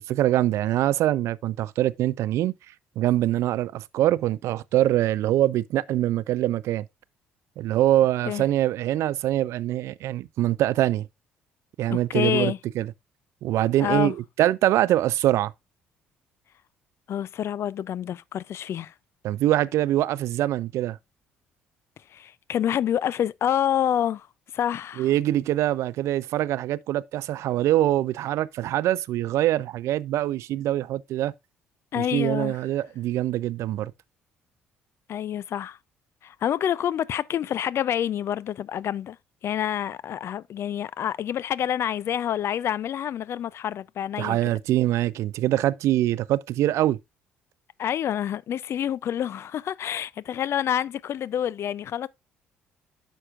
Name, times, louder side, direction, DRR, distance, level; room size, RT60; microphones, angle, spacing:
voice 1, 0.0-2.5 3.0-6.9 7.6-11.1 11.8-12.9 13.4-15.5 19.2-21.0 25.0-31.3 32.0-33.9 44.2-47.0, right 13 dB, 65° right, 0.4 m, -24 dB
voice 2, 11.9-12.6 13.8-14.1 17.1-18.9 22.1-24.3 24.5-25.1 31.9-32.6 35.1-35.8 36.2-39.2 39.4-44.4 47.8-52.1, left 10 dB, 55° left, 0.4 m, -27 dB
9.7 x 6.4 x 2.4 m
hypercardioid pair, 60°, 5 cm